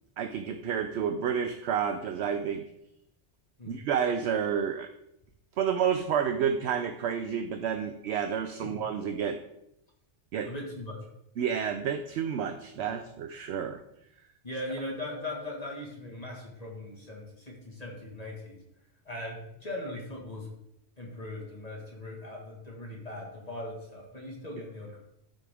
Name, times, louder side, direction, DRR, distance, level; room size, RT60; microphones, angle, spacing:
voice 1, 0.2-2.7 3.7-4.9 5.6-9.4 10.3-10.5 11.4-13.8, right 7 dB, 70° right, 7 dB, 0.8 m, -30 dB
voice 2, 10.4-11.0 14.4-18.6 19.1-20.5 21.0-25.0, left 1 dB, 35° left, -3 dB, 1.7 m, -39 dB
13.0 x 4.8 x 3.4 m, 0.80 s
omnidirectional pair, 1.2 m